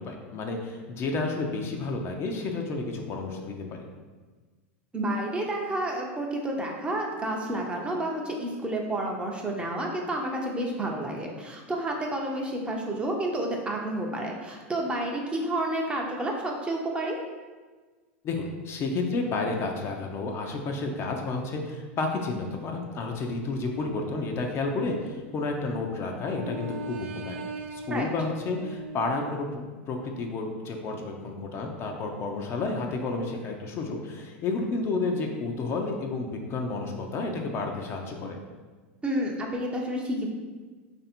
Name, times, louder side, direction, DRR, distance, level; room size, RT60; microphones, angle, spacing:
voice 1, 0.0-3.9 18.2-27.4 27.7-38.4, left 3 dB, 40° left, 2 dB, 0.5 m, -31 dB
voice 2, 4.9-17.2 27.9-28.1 39.0-40.3, right 1 dB, 15° right, 0 dB, 0.6 m, -30 dB
sound 1, 24.2-25.8 26.3-29.4, right 2 dB, 80° right, 0.3 m, -40 dB
3.3 x 2.6 x 4.3 m, 1.3 s
hypercardioid pair, 105°, 7 cm